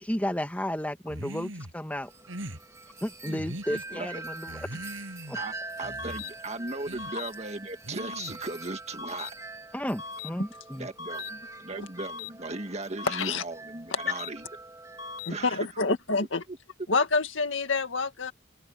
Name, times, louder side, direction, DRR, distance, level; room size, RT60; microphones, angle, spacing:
voice 1, 0.0-2.1 3.0-4.7 5.3-5.4 9.7-10.9, equal, 5° left, 1.5 m, -33 dB
sound 1, 1.1-1.7 2.3-2.6 3.3-3.8 4.5-5.4 5.8-6.3 6.9-7.1 7.8-8.5, right 1 dB, 75° right, 7.6 m, -40 dB
Wind chime, 2.0-15.4, right 2 dB, 15° right, 2.5 m, -44 dB
voice 2, 5.8-9.3 10.8-14.4 15.3-15.6 15.9-16.0, right 2 dB, 35° right, 1.8 m, -37 dB
sound 2, 6.0-6.3 7.0-7.3 8.0-8.3 9.0-9.3 10.0-10.3 11.0-11.3 12.0-12.3 13.0-13.3 14.0-14.3 15.0-15.3, left 5 dB, 90° left, 4.5 m, -39 dB
voice 3, 13.0-13.4 13.9-14.0 15.2-16.4 16.9-18.3, left 3 dB, 70° left, 2.0 m, -27 dB
head